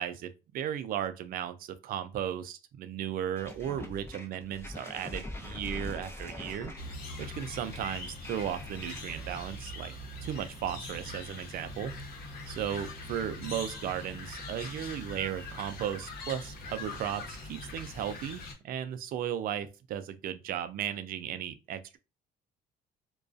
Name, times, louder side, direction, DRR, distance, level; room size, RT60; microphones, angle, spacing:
voice 1, 0.0-6.7 7.2-9.9 10.2-11.9 12.5-22.0, right 10 dB, 60° right, 0.4 m, -35 dB
sound 1, 3.4-9.6, left 1 dB, 15° left, 0.8 m, -43 dB
sound 2, 6.8-18.5, left 2 dB, 60° left, 0.9 m, -42 dB
2.3 x 2.2 x 2.5 m
cardioid pair, 110°, 17 cm